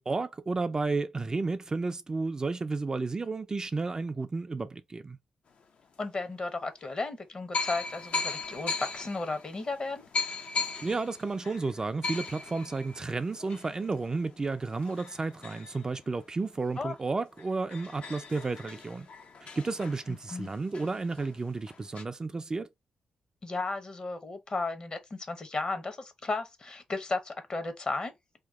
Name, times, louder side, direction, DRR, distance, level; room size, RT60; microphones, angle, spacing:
voice 1, 0.0-5.2 10.8-19.1 19.6-22.7, right 3 dB, 30° right, 0.3 m, -32 dB
sound 1, 5.8-5.9 6.8-6.9 7.5-16.7 17.1-17.2 17.4-22.0, left 4 dB, 65° left, 0.6 m, -38 dB
voice 2, 6.0-10.1 16.8-17.0 20.1-20.5 23.4-28.1, left 3 dB, 40° left, 0.9 m, -34 dB
2.9 x 2.2 x 3.5 m
cardioid pair, 70°, 2 cm